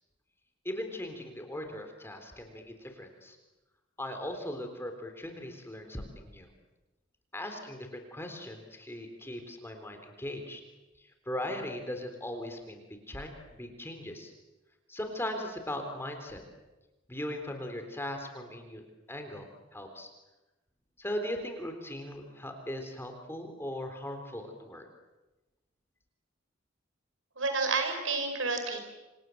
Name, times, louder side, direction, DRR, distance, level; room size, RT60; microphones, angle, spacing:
voice 1, 0.6-3.4 4.0-6.5 7.3-10.6 11.3-14.3 14.9-16.4 17.1-18.8 19.1-20.1 21.0-24.8, left 1 dB, 10° left, 5 dB, 3.8 m, -39 dB
voice 2, 27.4-28.8, right 4 dB, 80° right, 7 dB, 5.5 m, -30 dB
27.5 x 27.5 x 7.9 m, 1.1 s
head